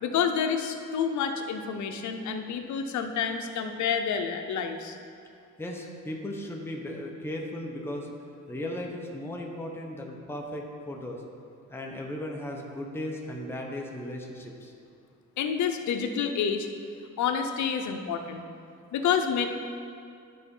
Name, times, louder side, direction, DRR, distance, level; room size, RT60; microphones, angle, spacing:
voice 1, 0.0-5.0 15.4-16.7 17.2-18.4 18.9-19.5, left 7 dB, 70° left, 6 dB, 0.8 m, -28 dB
voice 2, 5.6-8.1 8.5-11.2 11.7-14.7, left 1 dB, 10° left, 0 dB, 1.0 m, -36 dB
10.5 x 4.1 x 5.4 m, 2.4 s
cardioid pair, 90°, 30 cm